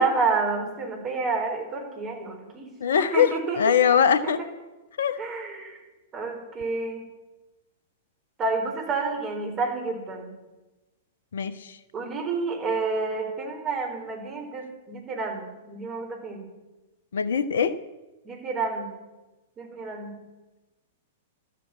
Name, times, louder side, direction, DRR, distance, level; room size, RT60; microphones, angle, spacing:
voice 1, 0.0-2.7 3.0-3.6 4.2-4.3 5.2-5.8 6.1-7.0 8.4-10.3 11.9-16.4 18.2-18.9 19.6-20.2, right 4 dB, 25° right, 3 dB, 4.6 m, -29 dB
voice 2, 2.8-4.4 5.0-5.2 11.3-11.8 17.1-17.8, left 7 dB, 65° left, 14 dB, 0.9 m, -22 dB
13.0 x 13.0 x 8.6 m, 1.1 s
figure-of-eight pair, 105°, 0 cm